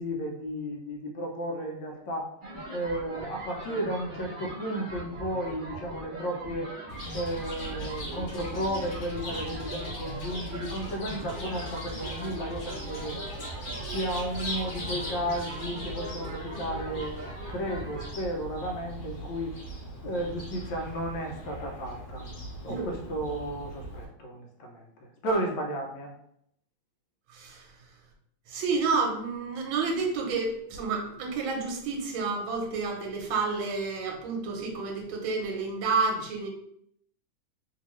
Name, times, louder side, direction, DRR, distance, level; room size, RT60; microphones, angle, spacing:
voice 1, 0.0-2.3 2.7-6.7 7.1-13.2 13.9-17.2 17.5-19.5 20.0-22.3 22.6-26.1, right 1 dB, 75° left, 2 dB, 1.3 m, -33 dB
sound 1, 2.4-18.1, right 1 dB, 60° right, 0.5 m, -41 dB
Chirp tweet, 6.9-24.0, equal, 55° left, 1.4 m, -40 dB
voice 2, 27.3-27.6 28.5-36.5, right 4 dB, 85° right, 2 dB, 1.5 m, -30 dB
3.3 x 2.7 x 3.0 m, 0.71 s
omnidirectional pair, 2.1 m